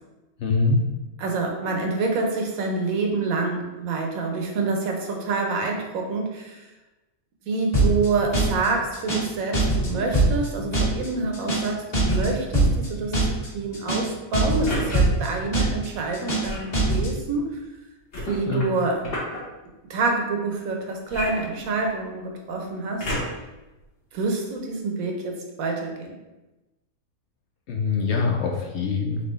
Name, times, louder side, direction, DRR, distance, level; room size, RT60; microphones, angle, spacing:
voice 1, 0.4-0.8 18.5-18.6 27.7-29.2, left 4 dB, 65° left, 1 dB, 0.7 m, -23 dB
voice 2, 1.2-6.6 7.5-13.1 13.5-17.6 18.3-19.0 19.9-23.1 24.1-26.1, right 3 dB, 75° right, 1 dB, 1.2 m, -27 dB
sound 1, 7.7-8.1 8.3-8.7 8.9-9.3 9.5-9.9 10.1-10.5 10.7-11.1 11.3-11.7 11.9-12.3 12.5-12.9 13.1-13.5 13.7-14.1 14.3-14.7 14.9-15.3 15.5-15.9 16.1-16.5 16.7-17.1, right 2 dB, 30° left, 1.7 m, -21 dB
sound 2, 12.0-12.4 14.7-15.0 16.4-16.7 18.1-19.4 21.1-22.1 23.0-23.5 24.2-24.3, left 1 dB, 45° left, 1.2 m, -32 dB
4.4 x 3.7 x 3.1 m, 1.1 s
omnidirectional pair, 1.5 m